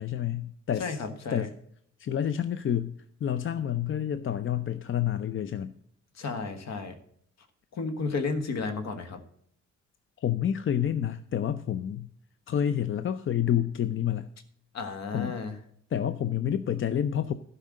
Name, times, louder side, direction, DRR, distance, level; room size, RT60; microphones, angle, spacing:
voice 1, 0.0-1.0 1.3-1.5 2.0-2.9 3.2-5.7 10.2-12.1 12.5-14.3 15.1-15.4 15.9-17.3, left 9 dB, 45° left, 13 dB, 0.6 m, -28 dB
voice 2, 0.8-1.5 6.2-7.0 7.7-9.2 14.7-15.5, left 4 dB, 60° left, 8 dB, 1.7 m, -32 dB
12.0 x 5.6 x 7.5 m, 0.66 s
cardioid pair, 90°, 30 cm